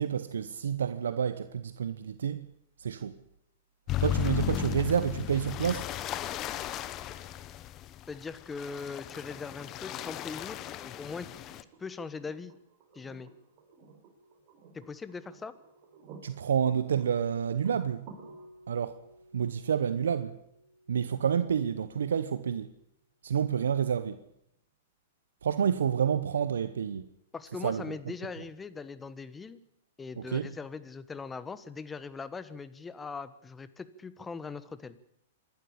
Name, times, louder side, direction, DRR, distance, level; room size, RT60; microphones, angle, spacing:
voice 1, 0.0-2.5 2.8-3.2 4.0-5.9 16.2-18.1 18.7-19.0 19.3-20.4 20.9-22.7 23.2-24.2 25.4-27.1 27.6-28.0 30.2-30.5, right 8 dB, 80° right, 0.9 m, -29 dB
sound 1, 3.9-11.6, left 12 dB, 35° left, 1.1 m, -35 dB
voice 2, 8.1-11.3 11.8-12.6 12.9-13.3 14.7-15.5 27.3-29.6 30.0-35.0, left 4 dB, 15° left, 1.2 m, -40 dB
sound 2, 8.8-22.8 24.5-24.6, right 4 dB, 45° right, 5.1 m, -56 dB
26.5 x 12.0 x 8.6 m
hypercardioid pair, 120°, 0 cm